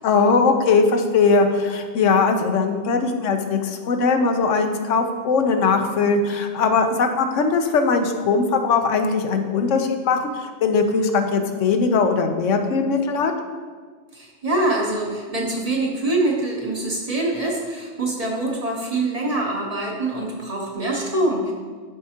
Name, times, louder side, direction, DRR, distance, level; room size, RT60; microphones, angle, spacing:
voice 1, 0.0-13.3, left 4 dB, 80° left, 6 dB, 1.1 m, -20 dB
voice 2, 14.1-21.5, right 2 dB, 35° right, -1 dB, 0.9 m, -24 dB
12.0 x 4.6 x 2.8 m, 1.5 s
omnidirectional pair, 1.3 m